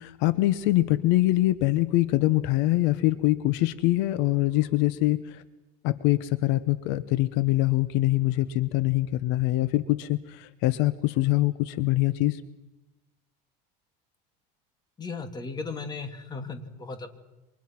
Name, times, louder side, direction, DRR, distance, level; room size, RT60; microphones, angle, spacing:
voice 1, 0.0-5.4 5.8-12.4, left 17 dB, 70° left, 14 dB, 1.1 m, -24 dB
voice 2, 15.0-17.2, left 4 dB, 20° left, 8 dB, 2.6 m, -36 dB
28.5 x 25.5 x 6.0 m, 1.0 s
cardioid pair, 135°, 19 cm